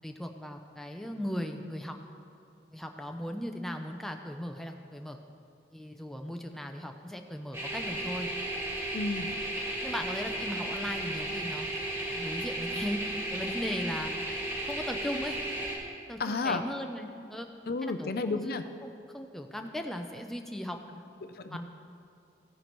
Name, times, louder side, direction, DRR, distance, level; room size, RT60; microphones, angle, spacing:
voice 1, 0.0-2.0 2.7-5.2 5.7-8.3 9.8-11.7 12.1-14.1 14.6-15.4 16.1-17.5 18.0-18.6 18.8-21.0 21.5-21.6, equal, ahead, 3 dB, 0.5 m, -37 dB
sound 1, 7.5-15.8, right 1 dB, 15° right, 1.7 m, -34 dB
voice 2, 8.9-9.3 16.2-16.6 17.7-18.6 21.2-21.6, left 3 dB, 55° left, 9 dB, 0.5 m, -32 dB
15.5 x 9.2 x 3.1 m, 2.6 s
head